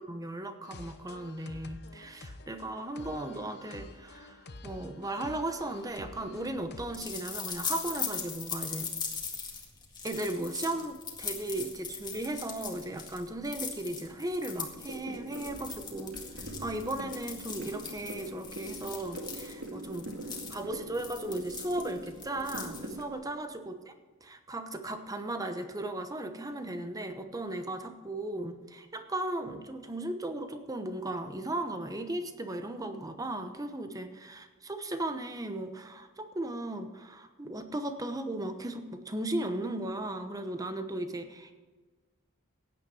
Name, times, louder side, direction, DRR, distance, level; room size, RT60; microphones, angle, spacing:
voice 1, 0.0-8.9 10.0-20.1 20.5-23.9 24.2-41.6, right 1 dB, 15° right, 8 dB, 0.9 m, -36 dB
sound 1, 0.6-7.3, left 2 dB, 55° left, 0.9 m, -48 dB
sound 2, 5.7-23.2, left 6 dB, 20° left, 1.9 m, -40 dB
sound 3, 14.5-23.0, right 1 dB, 85° right, 2.0 m, -44 dB
16.0 x 9.3 x 4.8 m, 1.3 s
head